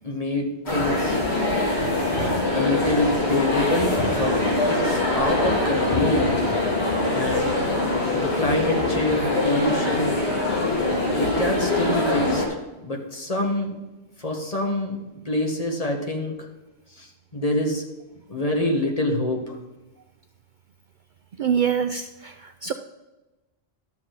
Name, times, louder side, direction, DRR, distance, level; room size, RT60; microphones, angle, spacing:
voice 1, 0.0-1.2 2.5-4.4 4.7-6.4 7.1-7.5 8.1-10.2 11.2-12.4 12.8-13.8 14.2-16.4 17.0-17.1 17.3-17.8 18.3-19.6, left 1 dB, 35° left, 1 dB, 1.7 m, -26 dB
sound 1, 0.7-12.5, left 2 dB, 75° left, 3.0 m, -23 dB
voice 2, 21.4-22.3 22.6-22.7, right 7 dB, 55° right, 8 dB, 0.6 m, -24 dB
12.0 x 7.4 x 4.0 m, 1.1 s
omnidirectional pair, 1.1 m